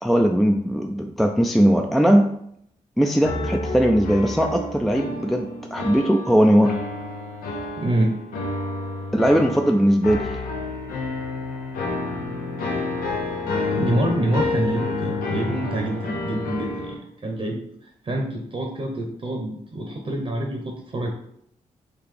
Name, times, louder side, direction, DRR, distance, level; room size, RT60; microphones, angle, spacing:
voice 1, 0.0-2.3 3.0-6.8 9.1-10.4, equal, ahead, 3 dB, 0.3 m, -19 dB
sound 1, 3.2-17.0, left 3 dB, 90° left, 0.6 m, -29 dB
voice 2, 7.8-8.2 13.7-21.1, right 1 dB, 40° right, 2 dB, 0.8 m, -26 dB
3.9 x 2.4 x 3.2 m, 0.71 s
supercardioid pair, 45°, 14 cm